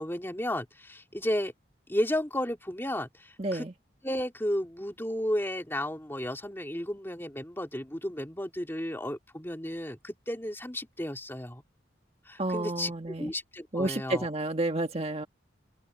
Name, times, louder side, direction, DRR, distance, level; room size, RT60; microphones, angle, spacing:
voice 1, 0.0-1.5 1.9-3.7 4.0-11.6 12.3-12.9 13.2-14.3, left 1 dB, 10° left, 2.6 m, -33 dB
voice 2, 3.4-3.7 12.4-13.3 13.7-15.3, right 2 dB, 30° right, 1.7 m, -30 dB
head